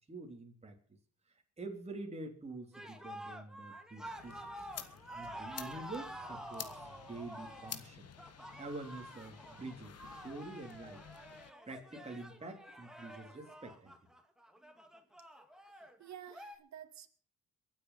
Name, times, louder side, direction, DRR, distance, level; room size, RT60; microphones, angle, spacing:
voice 1, 0.1-1.0 1.6-4.5 4.8-8.1 8.6-11.0 11.7-13.9, right 2 dB, 20° right, 1 dB, 3.4 m, -47 dB
sound 1, 2.7-16.6, right 1 dB, ahead, 2.4 m, -49 dB
sound 2, 4.0-11.5, left 8 dB, 55° left, 1.7 m, -51 dB
voice 2, 15.7-17.1, right 10 dB, 65° right, 7 dB, 2.1 m, -51 dB
22.5 x 8.6 x 5.7 m, 0.43 s
cardioid pair, 90°, 30 cm